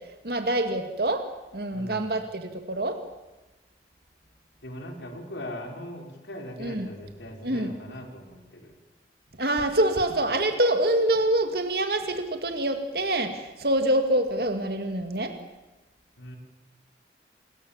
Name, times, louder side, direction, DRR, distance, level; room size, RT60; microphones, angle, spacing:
voice 1, 0.2-1.2 1.5-3.0 6.6-6.9 7.4-7.7 9.4-15.3, right 1 dB, 55° right, 6 dB, 2.3 m, -25 dB
voice 2, 1.7-2.1 4.6-8.7 16.2-16.4, equal, 85° left, 3 dB, 4.7 m, -40 dB
27.5 x 21.5 x 7.3 m, 1.1 s
head